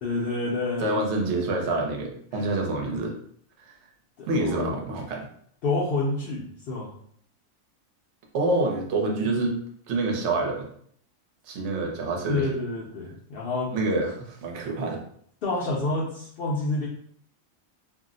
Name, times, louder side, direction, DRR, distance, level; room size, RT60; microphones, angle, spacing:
voice 1, 0.0-1.2 2.3-2.5 4.2-4.8 5.6-6.9 12.3-13.7 15.4-16.9, left 2 dB, 60° left, -5 dB, 0.6 m, -28 dB
voice 2, 0.8-3.1 3.6-3.7 4.3-5.3 8.3-9.6 9.9-10.7 11.5-12.5 13.7-15.0, right 2 dB, 65° right, 1 dB, 0.9 m, -27 dB
2.5 x 2.0 x 3.7 m, 0.63 s
omnidirectional pair, 1.4 m